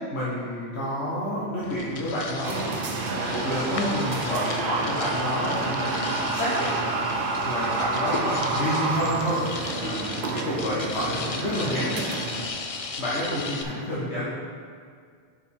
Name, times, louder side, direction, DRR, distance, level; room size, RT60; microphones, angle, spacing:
voice 1, 0.1-2.8 3.1-6.9 7.4-9.4 9.8-10.0 10.3-12.1 13.0-14.2, equal, 80° left, -8 dB, 1.6 m, -29 dB
sound 1, 1.6-13.6, left 4 dB, 45° left, 0.5 m, -36 dB
sound 2, 2.4-12.5, right 3 dB, 55° right, 0.8 m, -29 dB
10.5 x 5.0 x 3.7 m, 2.1 s
omnidirectional pair, 1.1 m